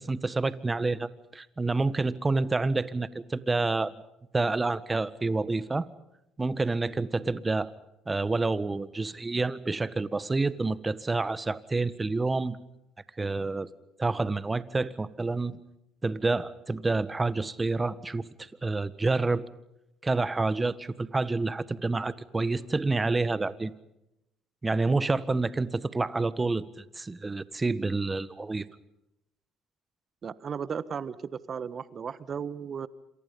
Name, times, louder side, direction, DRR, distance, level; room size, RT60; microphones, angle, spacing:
voice 1, 0.0-3.9 4.3-5.8 6.4-7.7 8.1-12.6 13.2-13.7 14.0-15.6 16.0-19.4 20.0-23.7 24.6-28.7, right 3 dB, 20° right, 15 dB, 1.5 m, -28 dB
voice 2, 30.2-32.9, right 7 dB, 45° right, 16 dB, 1.4 m, -35 dB
28.0 x 27.0 x 5.5 m, 0.86 s
hypercardioid pair, 65°, 0 cm